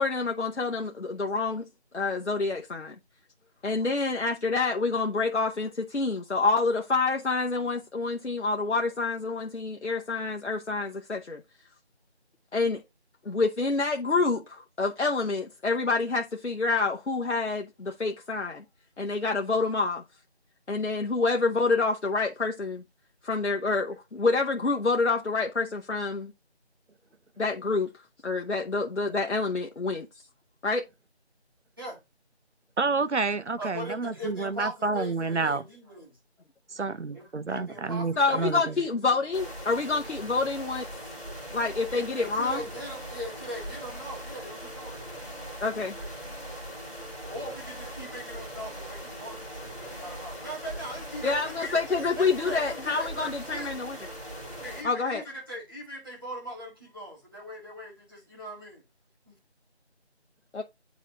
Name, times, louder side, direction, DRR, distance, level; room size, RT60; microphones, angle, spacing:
voice 1, 0.0-1.7 1.9-2.9 3.6-11.4 12.5-12.8 13.2-18.6 19.0-20.0 20.7-22.8 23.2-26.3 27.4-27.9 28.2-30.1 30.6-30.8 38.2-40.9 41.5-42.6 45.6-46.0 51.2-54.0 54.8-55.2 60.5-60.6, left 3 dB, 85° left, 0.9 m, -27 dB
voice 2, 32.8-35.6 36.7-38.7, right 4 dB, 85° right, 0.8 m, -29 dB
voice 3, 33.6-36.1 37.1-39.2 41.9-45.0 47.3-51.8 52.2-53.7 54.6-58.8 59.3-59.4, equal, 20° right, 2.0 m, -40 dB
sound 1, 39.3-54.8, equal, 5° right, 2.1 m, -40 dB
9.7 x 4.1 x 3.0 m
figure-of-eight pair, 175°, 34 cm